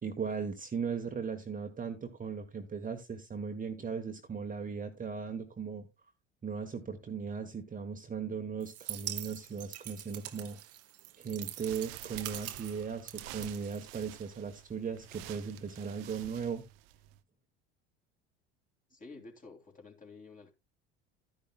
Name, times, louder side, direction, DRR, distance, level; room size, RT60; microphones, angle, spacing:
voice 1, 0.0-5.9 6.4-10.6 11.2-16.6, right 6 dB, 25° right, 1.4 m, -38 dB
sound 1, 8.6-14.3, right 13 dB, 50° right, 1.0 m, -44 dB
sound 2, 11.5-17.2, right 14 dB, 65° right, 0.8 m, -50 dB
voice 2, 18.9-20.5, left 3 dB, 25° left, 3.1 m, -51 dB
12.0 x 10.5 x 2.3 m
hypercardioid pair, 70°, 32 cm